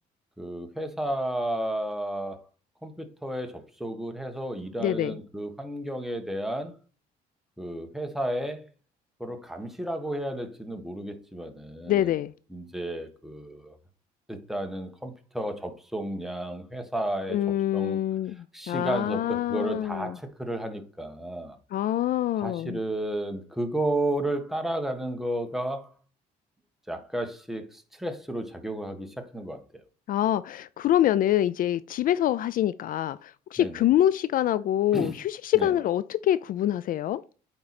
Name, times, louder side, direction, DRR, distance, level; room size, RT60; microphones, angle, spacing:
voice 1, 0.4-2.5 2.8-6.7 7.6-8.6 9.2-12.1 12.5-13.7 14.3-17.4 17.7-18.0 18.5-21.6 22.4-25.9 26.9-29.8 33.6-33.8 34.9-35.2 35.5-35.7, right 1 dB, ahead, 1.3 m, -32 dB
voice 2, 4.8-5.2 11.9-12.3 17.3-20.2 21.7-22.8 30.1-37.2, left 12 dB, 55° left, 0.4 m, -25 dB
8.7 x 4.5 x 4.2 m
cardioid pair, 110°, 17 cm